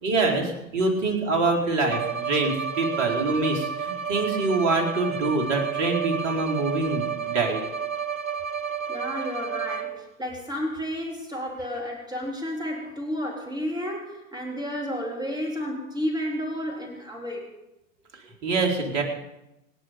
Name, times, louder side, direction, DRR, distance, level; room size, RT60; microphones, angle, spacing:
voice 1, 0.0-7.7 18.4-19.0, right 3 dB, 40° right, 1 dB, 4.5 m, -25 dB
Bowed string instrument, 1.9-10.2, right 7 dB, 75° right, 1.2 m, -31 dB
voice 2, 8.9-17.5, equal, 10° right, 0 dB, 3.5 m, -31 dB
26.5 x 10.0 x 5.2 m, 0.90 s
figure-of-eight pair, 90°, 42 cm